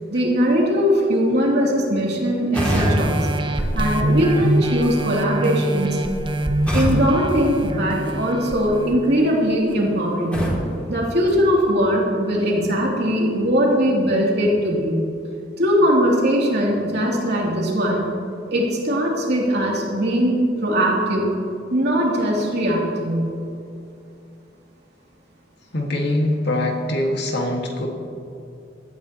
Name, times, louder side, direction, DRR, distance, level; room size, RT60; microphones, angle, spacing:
voice 1, 0.1-3.3 3.7-6.2 6.7-10.5 10.9-15.0 15.6-18.1 18.5-21.3 21.7-23.3, equal, 65° right, -3 dB, 2.9 m, -20 dB
sound 1, 2.5-4.5 6.7-8.4 10.3-11.9, equal, 5° left, 2.6 m, -26 dB
sound 2, 2.6-9.7 10.3-10.4, right 1 dB, 25° right, 0.7 m, -25 dB
sound 3, 6.9-7.1 8.0-8.3 9.7-9.9 11.3-11.4, left 1 dB, 25° left, 1.5 m, -39 dB
voice 2, 25.7-27.9, left 1 dB, 65° left, 1 dB, 1.9 m, -23 dB
16.5 x 13.0 x 3.0 m, 2.6 s
head